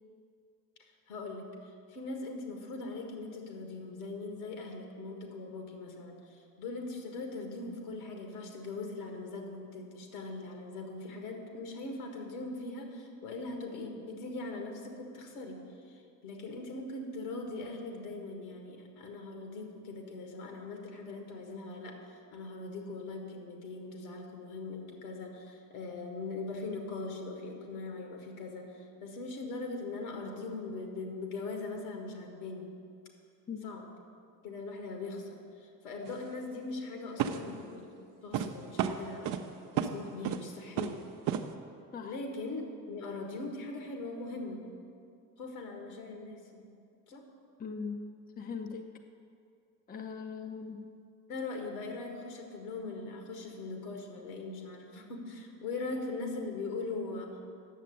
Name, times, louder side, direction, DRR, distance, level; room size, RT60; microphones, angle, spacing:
voice 1, 1.1-32.7 33.6-33.9 34.4-39.3 39.7-41.0 42.0-44.6 45.4-46.7 47.1-47.2 51.3-57.3, left 3 dB, 65° left, 3 dB, 1.7 m, -41 dB
sound 1, 36.0-36.2 37.2-37.6 38.3-38.5 38.8-39.4 39.8-39.9 40.2-40.5 40.8-41.0 41.3-41.4, right 9 dB, 45° right, 0.7 m, -31 dB
voice 2, 47.6-48.0 48.4-48.9 49.9-50.9, left 5 dB, 20° left, 5 dB, 0.7 m, -40 dB
9.2 x 7.4 x 7.9 m, 2.4 s
figure-of-eight pair, 50°, 46 cm